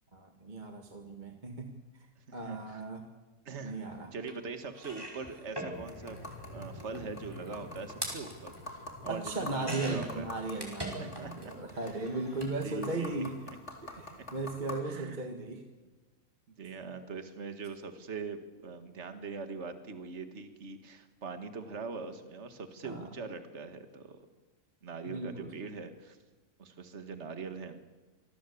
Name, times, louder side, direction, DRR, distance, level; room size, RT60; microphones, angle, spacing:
voice 1, 0.1-1.7 2.3-3.0 3.6-4.1 9.1-13.3 13.8-15.6 22.8-23.1 25.1-25.5, right 2 dB, 35° right, 4 dB, 1.9 m, -37 dB
voice 2, 2.3-2.8 3.5-3.8 4.1-6.2 6.5-10.3 11.0-11.5 11.8-12.0 12.6-13.2 14.2-14.3 14.8-15.3 16.6-24.3 24.8-26.2 26.6-27.8, right 4 dB, 50° right, 8 dB, 2.0 m, -42 dB
sound 1, 4.3-4.4 4.7-11.5 11.7-12.6 13.6-13.7 14.0-14.1, right 1 dB, 15° right, 5.4 m, -43 dB
sound 2, 5.7-14.7, left 1 dB, 50° left, 4.2 m, -48 dB
27.0 x 19.0 x 8.5 m, 1.2 s
omnidirectional pair, 1.5 m